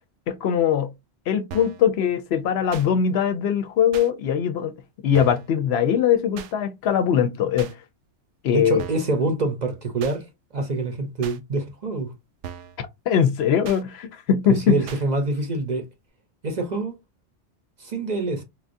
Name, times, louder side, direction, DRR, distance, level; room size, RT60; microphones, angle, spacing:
voice 1, 0.3-0.9 1.3-4.7 5.0-7.7 8.4-8.8 12.8-14.8, left 8 dB, 70° left, 0.8 m, -21 dB
sound 1, 1.5-1.8 2.7-2.9 3.9-4.1 5.1-5.5 6.4-6.5 7.6-7.7 8.8-9.1 10.0-10.2 11.2-11.4 12.4-12.8 13.6-13.8 14.9-15.0, right 8 dB, 90° right, 0.9 m, -38 dB
voice 2, 8.5-10.3 10.5-12.1 14.5-15.9 16.4-17.0 17.8-18.4, right 2 dB, 45° right, 0.7 m, -26 dB
4.6 x 2.3 x 2.5 m
omnidirectional pair, 1.2 m